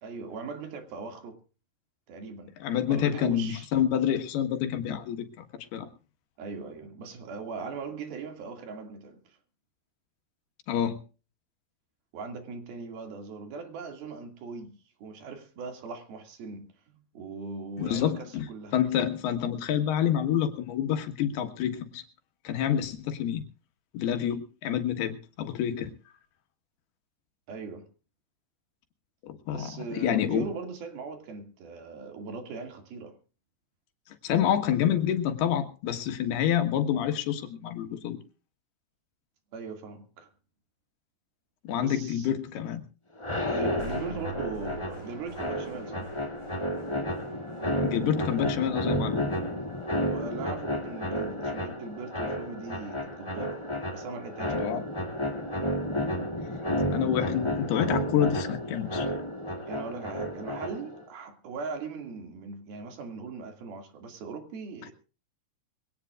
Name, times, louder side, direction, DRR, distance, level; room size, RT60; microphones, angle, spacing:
voice 1, 0.0-1.4 2.1-2.5 2.9-3.7 6.4-9.4 12.1-18.8 27.5-27.9 29.5-33.1 39.5-40.3 41.8-42.3 43.5-46.1 50.1-53.6 53.9-54.7 59.7-64.9, right 4 dB, 70° right, 4.1 m, -40 dB
voice 2, 2.6-5.3 5.7-5.9 10.7-11.0 17.8-18.5 18.7-22.0 22.5-23.4 23.9-25.9 29.2-30.5 34.2-38.2 41.7-42.8 47.8-49.3 54.5-54.8 56.9-59.1, left 9 dB, 80° left, 3.5 m, -28 dB
sound 1, 43.2-61.0, equal, 15° left, 1.2 m, -32 dB
sound 2, 43.8-51.8, equal, 20° right, 7.3 m, -47 dB
23.0 x 17.5 x 2.4 m
omnidirectional pair, 4.5 m